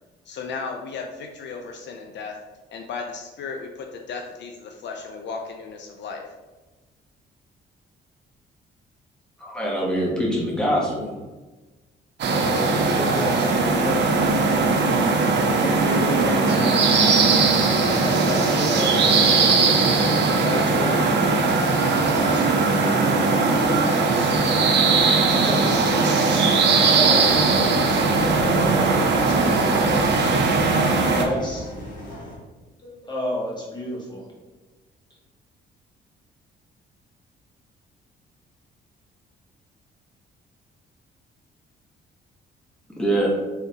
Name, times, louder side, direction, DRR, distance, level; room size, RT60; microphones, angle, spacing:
voice 1, 0.3-2.4 2.7-6.3, left 4 dB, 65° left, 2 dB, 0.5 m, -35 dB
voice 2, 9.4-11.2 42.9-43.3, right 1 dB, 5° left, -4 dB, 1.1 m, -24 dB
voice 3, 12.2-14.9 15.6-19.6 20.3-21.8 22.1-23.1 23.5-23.7 24.1-24.7 25.3-25.7 26.8-30.0 30.8-31.8 32.8-34.3, equal, 20° left, -4 dB, 1.4 m, -31 dB
Birds and ambiance, 12.2-31.2, right 3 dB, 60° right, 0.6 m, -19 dB
sound 1, 27.2-32.4, left 1 dB, 45° left, 1.3 m, -35 dB
3.7 x 3.4 x 2.8 m, 1.2 s
cardioid pair, 90°, 20 cm